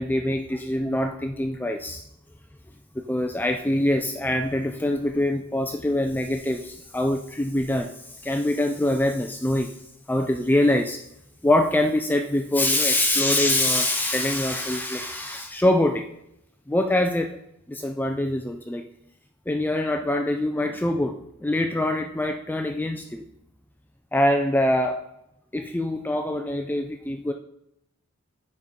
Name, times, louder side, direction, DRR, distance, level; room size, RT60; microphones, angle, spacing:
voice 1, 0.0-2.0 3.0-9.7 10.1-11.0 11.4-16.1 16.7-17.4 17.7-18.8 19.5-23.2 24.1-25.0 25.5-27.3, left 1 dB, 10° left, 4 dB, 0.4 m, -24 dB
9.3 x 5.3 x 3.7 m, 0.81 s
head